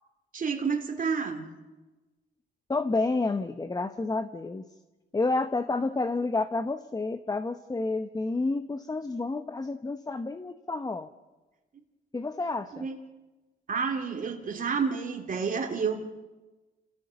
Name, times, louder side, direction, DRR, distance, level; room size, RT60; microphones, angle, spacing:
voice 1, 0.3-1.5 12.7-13.0 13.7-16.0, right 5 dB, 45° right, 2 dB, 2.7 m, -29 dB
voice 2, 2.7-4.6 5.1-11.1 12.1-12.9, left 3 dB, 20° left, 10 dB, 0.9 m, -30 dB
29.0 x 16.0 x 7.0 m, 1.2 s
cardioid pair, 90°, 20 cm